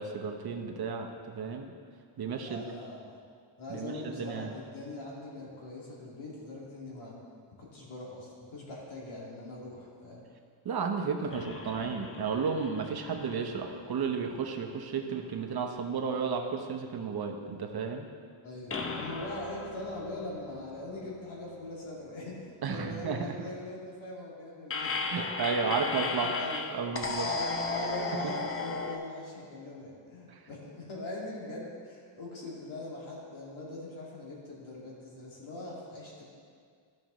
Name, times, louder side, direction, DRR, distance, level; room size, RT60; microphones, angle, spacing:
voice 1, 0.0-1.7 2.2-2.6 3.7-4.5 10.6-18.1 22.6-23.3 25.1-26.3 26.7-27.3 28.2-28.3 30.3-30.4, right 5 dB, 50° right, 3 dB, 0.8 m, -33 dB
voice 2, 2.4-3.2 3.6-7.2 7.6-10.2 11.3-11.4 18.4-25.2 25.6-26.7 27.2-36.2, left 2 dB, 80° left, -4 dB, 2.1 m, -42 dB
sound 1, 11.3-14.8 15.1-15.2 18.7-21.8 24.7-29.0, left 4 dB, 30° left, 0.6 m, -36 dB
14.0 x 5.3 x 3.0 m, 2.1 s
wide cardioid pair, 135°, 47 cm